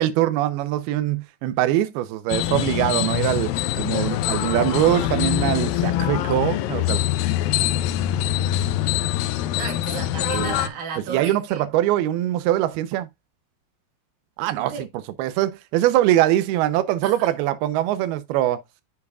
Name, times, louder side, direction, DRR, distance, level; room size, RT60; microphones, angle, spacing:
voice 1, 0.0-7.0 10.3-10.5 11.0-13.1 14.4-14.9 15.2-18.6, right 13 dB, 85° right, 2.7 m, -22 dB
sound 1, 2.3-10.7, left 13 dB, 80° left, 2.2 m, -24 dB
voice 2, 9.5-11.6 14.6-14.8 17.0-17.3, right 6 dB, 70° right, 3.6 m, -33 dB
8.3 x 7.2 x 2.3 m
omnidirectional pair, 4.4 m